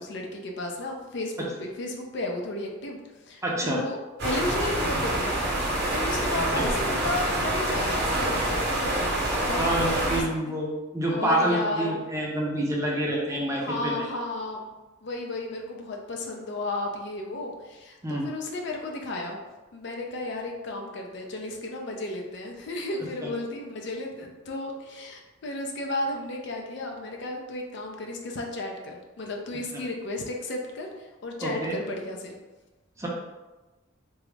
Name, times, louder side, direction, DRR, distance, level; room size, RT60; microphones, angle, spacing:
voice 1, 0.0-3.0 3.3-5.4 5.9-9.8 10.1-10.4 11.1-12.0 13.6-14.7 15.0-19.4 19.7-32.4, left 2 dB, 60° left, 1 dB, 0.5 m, -33 dB
voice 2, 3.4-3.8 6.5-6.6 9.6-14.1 18.0-18.3 23.2-23.3 31.4-31.7 33.0-33.1, right 1 dB, 15° right, -3 dB, 0.5 m, -27 dB
sound 1, 4.2-10.2, right 1 dB, 55° right, 0.8 m, -26 dB
3.5 x 2.0 x 3.2 m, 1.1 s
head